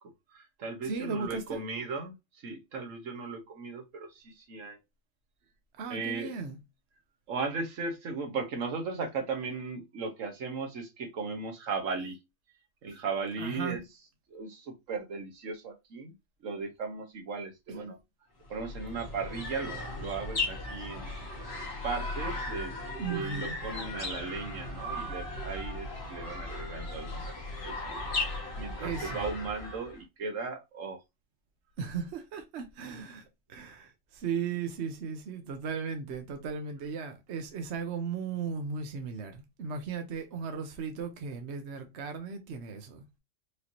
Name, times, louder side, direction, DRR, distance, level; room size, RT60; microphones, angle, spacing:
voice 1, 0.3-4.8 5.9-6.3 7.3-12.2 12.8-13.8 14.3-16.1 16.4-18.0 18.5-21.1 21.8-22.8 23.1-27.3 27.6-28.0 28.6-31.0, right 4 dB, 80° right, 1.4 m, -37 dB
voice 2, 0.8-1.6 5.8-6.6 13.4-13.8 17.7-17.9 23.0-23.6 28.8-29.3 31.8-43.0, right 5 dB, 65° right, 1.0 m, -36 dB
sound 1, 18.4-30.0, left 2 dB, 55° left, 1.6 m, -37 dB
4.9 x 2.7 x 2.9 m
omnidirectional pair, 1.3 m